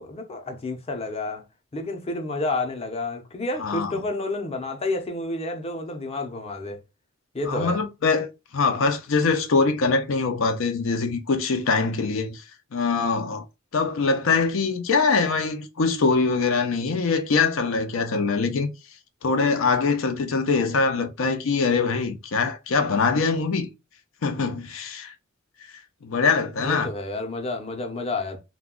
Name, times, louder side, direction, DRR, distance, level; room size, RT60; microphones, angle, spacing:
voice 1, 0.0-1.4 1.7-6.8 7.3-7.8 26.6-28.4, left 2 dB, 30° left, 0.6 m, -30 dB
voice 2, 3.6-4.0 7.5-12.4 12.7-13.4 13.7-18.7 19.2-23.7 24.2-25.1 26.0-26.9, left 4 dB, 80° left, 0.5 m, -23 dB
2.3 x 2.2 x 3.6 m
head